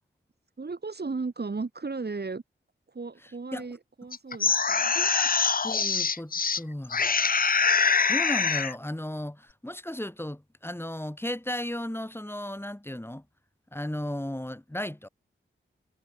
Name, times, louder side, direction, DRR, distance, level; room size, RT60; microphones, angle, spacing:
voice 1, 0.6-2.4 2.9-4.9, right 4 dB, 50° right, 3.7 m, -35 dB
voice 2, 3.2-3.7 5.0-5.3 5.6-7.0 8.1-13.2 13.7-15.1, left 1 dB, 10° left, 3.8 m, -35 dB
sound 1, 4.1-6.6 6.9-8.8, left 5 dB, 45° left, 0.7 m, -24 dB
wide cardioid pair, 65°, 21 cm